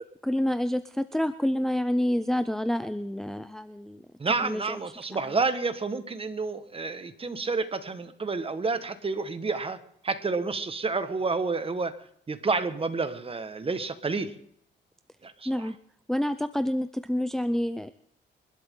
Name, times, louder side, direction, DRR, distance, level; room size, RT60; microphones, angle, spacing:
voice 1, 0.2-4.0 4.4-4.8 5.2-5.4 15.5-15.8 16.1-17.9, left 1 dB, ahead, 11 dB, 0.6 m, -28 dB
voice 2, 4.2-9.8 10.0-11.9 12.3-14.3 15.2-15.7, right 4 dB, 30° right, 10 dB, 1.7 m, -29 dB
28.0 x 12.5 x 3.9 m, 0.69 s
cardioid pair, 90°, 20 cm